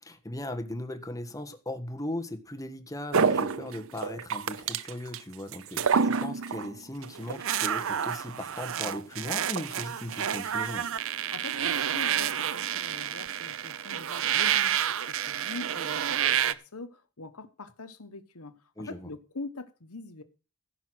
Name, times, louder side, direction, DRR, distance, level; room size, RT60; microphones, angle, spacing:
voice 1, 0.0-10.9 18.8-19.1, left 1 dB, 15° left, 1.5 m, -38 dB
sound 1, 3.1-5.2 5.5-6.7 7.0-16.5, right 8 dB, 65° right, 0.7 m, -29 dB
voice 2, 11.3-20.2, left 3 dB, 75° left, 1.3 m, -43 dB
15.5 x 6.0 x 6.3 m
head